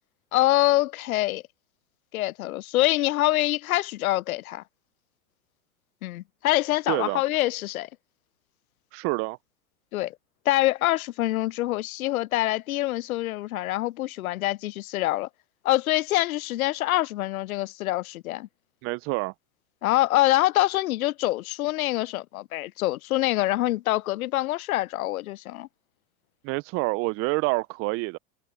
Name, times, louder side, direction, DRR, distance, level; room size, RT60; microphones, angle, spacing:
voice 1, 0.3-1.4 2.1-4.6 6.0-7.9 9.9-10.1 10.5-15.3 15.6-18.5 19.8-25.7, left 16 dB, 75° left, 0.6 m, -25 dB
voice 2, 6.9-7.2 8.9-9.4 18.8-19.3 26.4-28.2, right 26 dB, 30° right, 0.5 m, -27 dB
hypercardioid pair, 105°, 43 cm